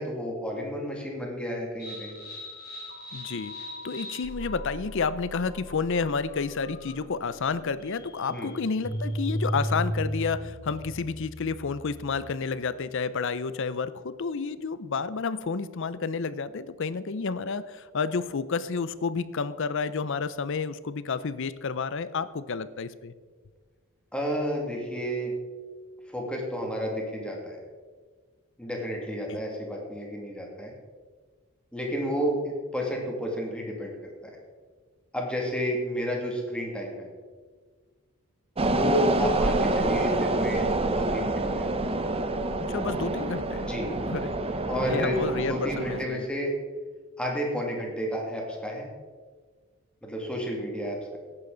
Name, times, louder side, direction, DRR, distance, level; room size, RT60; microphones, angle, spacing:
voice 1, 0.0-2.2 8.3-8.5 24.1-25.3 26.1-27.6 28.6-30.7 31.7-32.4 32.7-33.9 35.1-37.1 38.6-41.8 43.6-43.9 44.7-46.5 47.2-48.9 50.0-51.2, equal, 5° left, -1 dB, 2.3 m, -31 dB
sound 1, 1.8-12.4, equal, 45° left, 2.4 m, -36 dB
voice 2, 3.1-3.5 3.8-23.1 29.3-29.4 42.7-43.7 44.1-44.4 44.9-46.3, left 5 dB, 60° left, 15 dB, 0.6 m, -30 dB
sound 2, 38.6-46.0, right 2 dB, 30° right, 0.7 m, -27 dB
17.5 x 8.9 x 3.9 m, 1.5 s
head